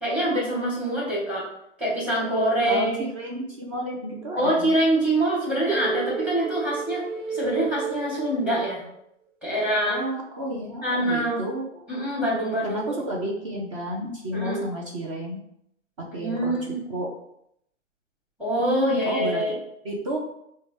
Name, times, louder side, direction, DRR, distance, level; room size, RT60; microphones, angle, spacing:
voice 1, 0.0-1.4 1.8-3.0 4.4-7.0 7.3-8.8 9.4-10.0 10.8-11.4 11.9-13.0 14.3-14.6 16.1-16.8 18.4-19.6, right 1 dB, 5° right, -5 dB, 1.1 m, -25 dB
voice 2, 2.7-4.7 9.9-11.8 12.6-15.4 16.1-16.5 16.9-17.1 18.6-20.2, right 1 dB, 25° right, -2 dB, 0.4 m, -31 dB
sound 1, 5.7-8.9, right 4 dB, 90° right, 0.6 m, -31 dB
4.8 x 2.2 x 3.2 m, 0.76 s
hypercardioid pair, 135°, 37 cm